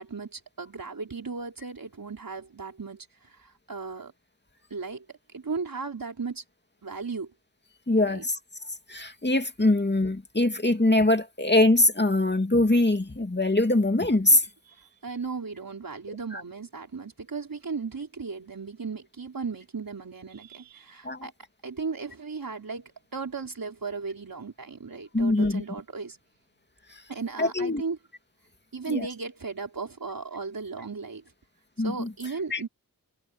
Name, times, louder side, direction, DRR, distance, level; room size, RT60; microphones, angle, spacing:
voice 1, 0.0-4.1 4.7-5.1 5.3-6.4 6.8-7.3 8.0-8.3 14.7-21.3 21.6-26.2 27.1-28.0 28.7-31.2 31.8-32.7, right 4 dB, 75° right, 4.3 m, -36 dB
voice 2, 7.9-8.4 8.9-14.4 16.3-16.4 21.0-21.3 25.1-25.6 27.4-27.8 28.9-29.1 31.8-32.1 32.5-32.6, left 2 dB, 30° left, 2.5 m, -23 dB
cardioid pair, 40°, 34 cm